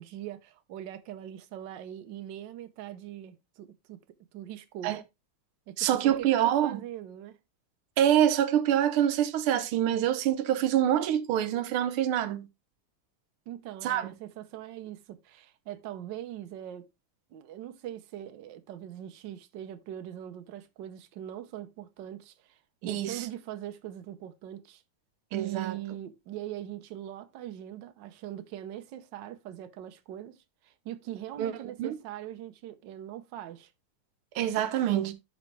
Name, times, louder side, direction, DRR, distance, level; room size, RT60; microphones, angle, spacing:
voice 1, 0.0-4.0 4.3-4.9 5.7-7.4 13.5-16.9 17.3-24.8 25.3-33.7, right 12 dB, 65° right, 1.4 m, -41 dB
voice 2, 5.8-6.8 8.0-12.5 13.8-14.1 22.8-23.3 25.3-25.8 31.4-31.5 31.8-32.0 34.3-35.1, right 11 dB, 90° right, 1.7 m, -26 dB
12.0 x 4.2 x 3.2 m
omnidirectional pair, 2.3 m